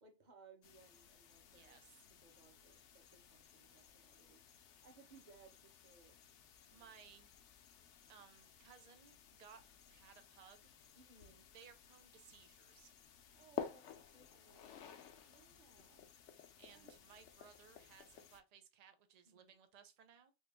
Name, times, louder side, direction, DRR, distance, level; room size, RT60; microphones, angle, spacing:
voice 1, 0.0-1.8 2.1-4.4 4.8-6.2 6.7-6.9 10.9-11.5 13.3-14.9 15.2-16.1 16.7-17.3 19.3-19.5, right 4 dB, 40° right, 0.9 m, -65 dB
sound 1, 0.6-18.4, left 8 dB, 75° left, 0.9 m, -55 dB
voice 2, 1.5-2.0 6.7-7.3 8.1-10.7 11.5-12.9 16.6-20.3, right 7 dB, 70° right, 0.3 m, -62 dB
3.5 x 2.5 x 3.3 m
omnidirectional pair, 1.2 m